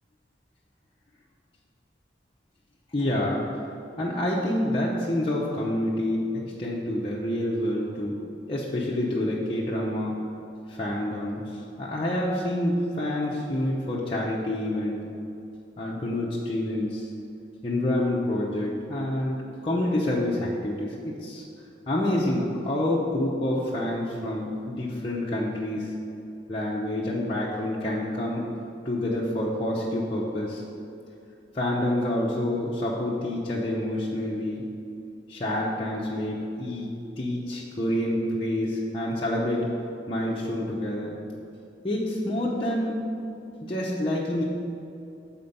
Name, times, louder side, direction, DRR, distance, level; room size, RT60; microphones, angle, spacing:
voice 1, 2.9-3.4 4.0-8.2 8.5-10.1 10.7-15.1 15.8-17.1 17.6-21.4 21.9-25.9 26.5-28.5 28.8-30.6 31.5-34.6 35.3-39.7 40.1-41.1 41.8-43.0 43.6-44.4, left 1 dB, 30° left, -6 dB, 0.7 m, -27 dB
7.2 x 4.3 x 5.3 m, 2.7 s
head